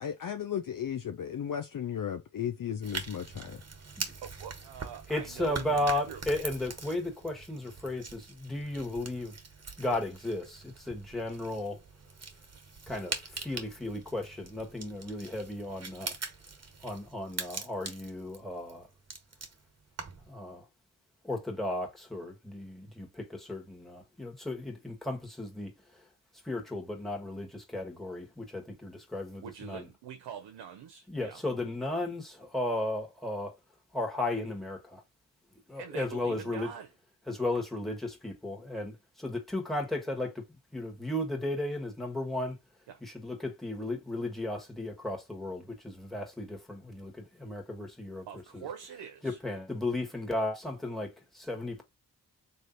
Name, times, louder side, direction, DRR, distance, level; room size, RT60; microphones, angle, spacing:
voice 1, 0.0-3.6, left 9 dB, 50° left, 0.6 m, -35 dB
sound 1, 2.8-20.3, right 4 dB, 40° right, 1.2 m, -43 dB
voice 2, 4.2-6.2 29.4-31.4 35.8-36.9 42.9-43.0 48.3-49.4, right 8 dB, 85° right, 0.6 m, -44 dB
voice 3, 5.1-9.3 9.8-11.8 12.9-16.2 16.8-18.9 20.3-20.6 21.2-25.7 26.4-29.8 31.1-33.5 33.9-35.0 35.7-36.7 37.3-40.4 40.7-42.6 43.0-48.3 48.5-48.7 49.2-51.8, left 1 dB, ahead, 1.5 m, -35 dB
3.3 x 2.7 x 3.9 m
cardioid pair, 45°, 41 cm